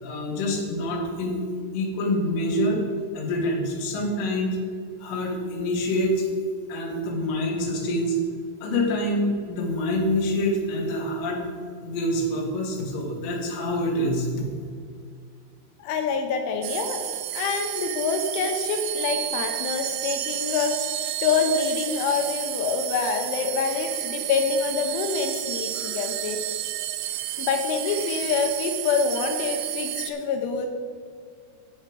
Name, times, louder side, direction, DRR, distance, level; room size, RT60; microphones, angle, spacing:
voice 1, 0.0-1.4 1.7-2.8 3.1-4.6 5.0-6.3 6.7-8.2 8.6-11.4 11.8-14.3, left 1 dB, 55° left, -1 dB, 2.9 m, -26 dB
voice 2, 15.8-17.0 17.3-20.7 21.2-26.4 27.4-30.7, left 5 dB, 85° left, 4 dB, 3.1 m, -26 dB
sound 1, 16.6-30.1, right 13 dB, 85° right, 3.1 m, -31 dB
10.5 x 7.9 x 5.0 m, 2.2 s
omnidirectional pair, 5.6 m